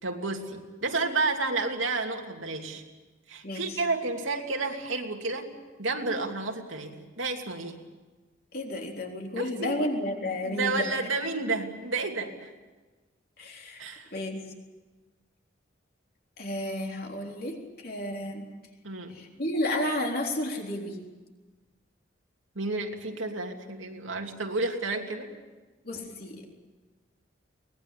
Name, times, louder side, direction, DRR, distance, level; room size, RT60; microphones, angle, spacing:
voice 1, 0.0-2.8 3.3-7.8 9.4-9.8 10.4-12.5 13.8-14.1 18.8-19.2 22.5-25.3, right 3 dB, 85° right, 2 dB, 2.9 m, -31 dB
voice 2, 3.4-3.8 8.5-10.9 13.4-13.8 14.1-14.4 16.4-18.5 19.1-21.0 25.8-26.4, left 1 dB, 50° left, 1 dB, 3.9 m, -32 dB
24.0 x 19.5 x 8.6 m, 1.2 s
head